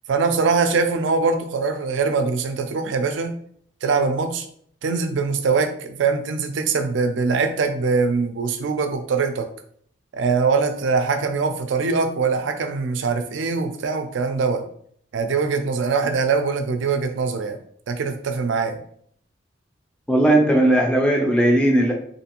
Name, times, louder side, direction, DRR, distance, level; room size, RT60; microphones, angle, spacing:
voice 1, 0.1-3.3 3.8-4.5 4.8-9.5 10.1-14.6 15.1-17.6 17.9-18.8, right 4 dB, 70° right, 7 dB, 0.4 m, -22 dB
voice 2, 20.1-21.9, right 1 dB, 5° left, 1 dB, 0.4 m, -17 dB
2.5 x 2.5 x 2.8 m, 0.62 s
head